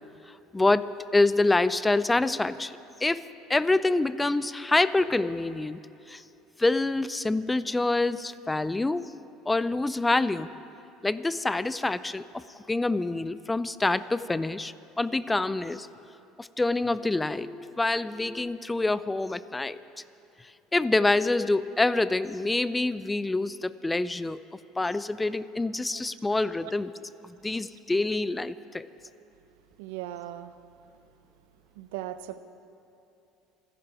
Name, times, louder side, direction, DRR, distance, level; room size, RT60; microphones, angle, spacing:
voice 1, 0.5-3.2 3.5-5.8 6.1-6.2 6.6-9.1 9.5-10.5 11.0-12.4 12.7-15.9 16.4-19.8 20.7-24.4 24.8-26.9 27.2-28.9, left 2 dB, 15° left, 16 dB, 0.5 m, -26 dB
voice 2, 29.8-30.5 31.8-32.4, right 13 dB, 80° right, 12 dB, 0.7 m, -38 dB
26.5 x 11.0 x 4.9 m, 2.7 s
supercardioid pair, 95°, 0 cm